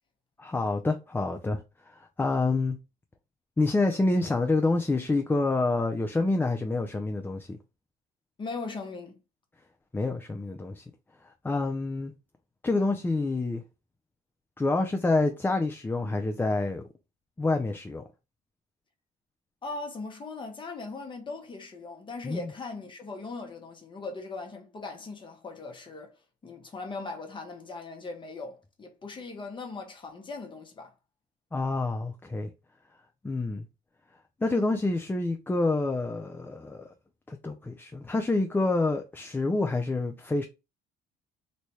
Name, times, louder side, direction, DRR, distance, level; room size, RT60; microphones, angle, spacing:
voice 1, 0.4-2.8 3.6-7.6 9.9-10.8 11.4-12.1 12.6-13.6 14.6-16.8 17.4-18.0 22.2-22.5 31.5-32.5 33.2-33.7 34.4-36.9 37.3-40.5, left 2 dB, 10° left, 0.4 m, -27 dB
voice 2, 8.4-9.2 19.6-26.2 26.4-30.9, left 3 dB, 30° left, 0.8 m, -39 dB
3.2 x 2.2 x 4.1 m
cardioid pair, 110°, 17 cm